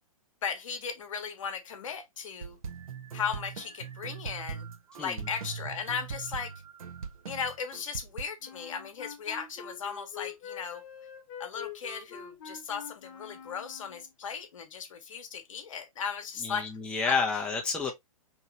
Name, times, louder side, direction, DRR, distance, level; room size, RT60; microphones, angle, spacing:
voice 1, 0.4-2.6 3.1-4.7 5.0-6.5 7.2-10.8 11.4-16.7 17.0-17.2, left 6 dB, 60° left, 0.9 m, -36 dB
sound 1, 2.4-8.2, right 6 dB, 75° right, 0.7 m, -40 dB
Wind instrument woodwind instrument, 8.4-14.1, left 7 dB, 35° left, 1.0 m, -45 dB
voice 2, 16.4-17.9, left 4 dB, 5° left, 0.4 m, -30 dB
2.8 x 2.8 x 2.7 m
figure-of-eight pair, 120°, 18 cm